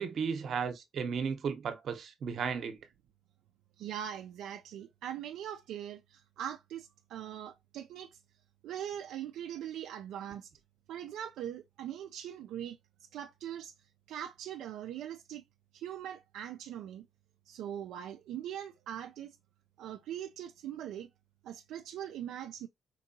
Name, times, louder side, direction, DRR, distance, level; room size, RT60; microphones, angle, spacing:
voice 1, 0.0-2.8, right 6 dB, 60° right, 0.8 m, -34 dB
voice 2, 3.8-8.2 8.6-10.5 10.9-12.8 13.1-13.7 14.1-15.4 15.7-17.1 17.5-19.4 19.8-21.1 21.4-22.7, right 10 dB, 85° right, 0.3 m, -41 dB
4.4 x 2.8 x 2.6 m
cardioid pair, 90°, 0 cm